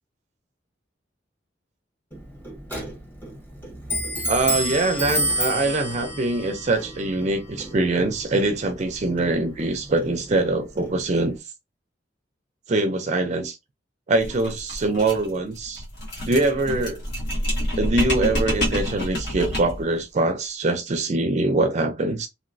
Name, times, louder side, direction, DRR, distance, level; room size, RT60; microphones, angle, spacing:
Clock, 2.1-11.4, equal, 10° left, 1.3 m, -31 dB
voice 1, 4.3-11.4 12.7-13.6 14.1-15.8 16.2-17.0 17.8-22.3, right 2 dB, 40° right, 0.4 m, -23 dB
sound 1, 14.2-19.9, equal, 65° left, 1.5 m, -27 dB
3.0 x 2.8 x 2.5 m
head